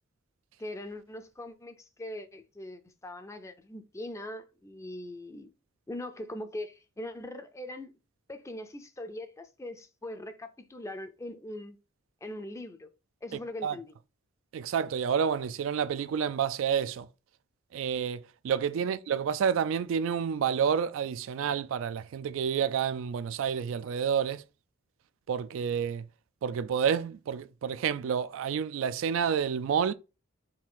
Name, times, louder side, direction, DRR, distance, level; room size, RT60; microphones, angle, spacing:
voice 1, 0.6-5.5 5.9-7.9 8.3-11.8 12.2-12.9 13.2-13.9, left 1 dB, 15° left, 0.4 m, -41 dB
voice 2, 14.5-17.1 17.7-24.4 25.3-26.1 26.4-29.9, right 7 dB, 65° right, 0.3 m, -29 dB
4.3 x 2.4 x 3.8 m
head